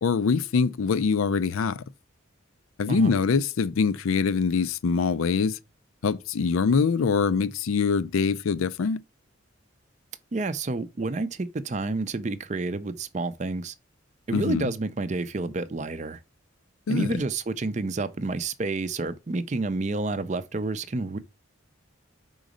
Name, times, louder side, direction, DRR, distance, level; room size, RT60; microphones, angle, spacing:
voice 1, 0.0-1.8 2.8-5.6 6.0-9.0 14.3-14.7 16.9-17.1, left 5 dB, 85° left, 0.4 m, -24 dB
voice 2, 10.3-13.7 14.3-16.2 16.9-21.2, right 3 dB, 35° right, 0.5 m, -29 dB
5.1 x 3.9 x 5.0 m
head